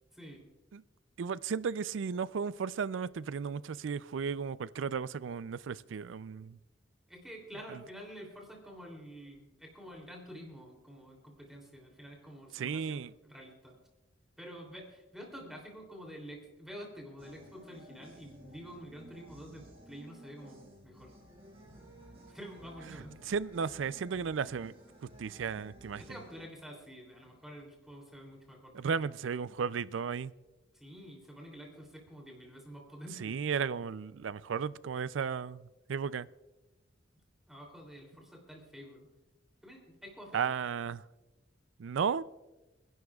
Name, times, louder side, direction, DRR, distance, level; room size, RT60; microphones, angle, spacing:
voice 1, 0.1-0.5 7.1-13.8 14.4-21.1 22.3-23.2 26.0-29.1 30.7-33.4 37.5-39.1 39.6-40.5, equal, ahead, 3.0 m, -48 dB
voice 2, 1.2-6.6 12.5-13.1 23.3-24.7 25.2-26.0 28.7-30.3 33.2-36.3 40.3-41.0 41.8-42.2, right 6 dB, 80° right, 0.4 m, -34 dB
sound 1, 17.2-26.5, equal, 35° right, 4.2 m, -55 dB
28.0 x 11.0 x 2.4 m
head